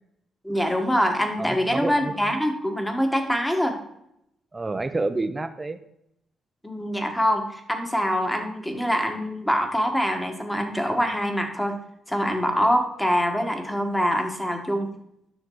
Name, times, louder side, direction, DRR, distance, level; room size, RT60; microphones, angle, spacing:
voice 1, 0.4-3.8 6.6-11.8 12.1-14.9, equal, 5° left, 4 dB, 1.4 m, -24 dB
voice 2, 1.4-2.2 4.5-5.8, right 3 dB, 20° right, 9 dB, 0.7 m, -28 dB
10.5 x 6.3 x 3.8 m, 0.77 s
cardioid pair, 115°, 0 cm